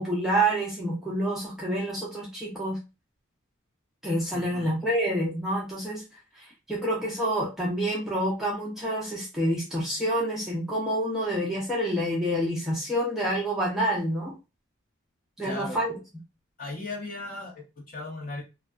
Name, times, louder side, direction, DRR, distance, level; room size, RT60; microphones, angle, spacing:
voice 1, 0.0-2.8 4.0-6.0 6.4-14.3 15.4-15.9, right 1 dB, ahead, -6 dB, 0.5 m, -28 dB
voice 2, 4.3-4.7 15.4-15.8 16.6-18.4, left 2 dB, 40° left, -1 dB, 0.9 m, -37 dB
2.6 x 2.3 x 2.3 m, 0.27 s
head